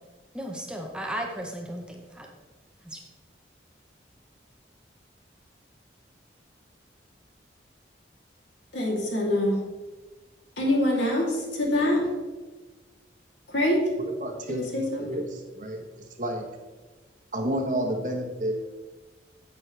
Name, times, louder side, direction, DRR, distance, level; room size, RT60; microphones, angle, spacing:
voice 1, 0.3-2.3 2.8-3.0, right 1 dB, 5° right, 1 dB, 0.8 m, -35 dB
voice 2, 8.7-9.6 10.6-12.0 13.5-13.8 14.5-15.1, left 1 dB, 75° left, -2 dB, 2.9 m, -25 dB
voice 3, 14.0-14.6 15.1-15.8 16.2-16.5 17.3-18.5, right 1 dB, 45° right, 3 dB, 1.1 m, -30 dB
10.5 x 8.3 x 3.3 m, 1.3 s
head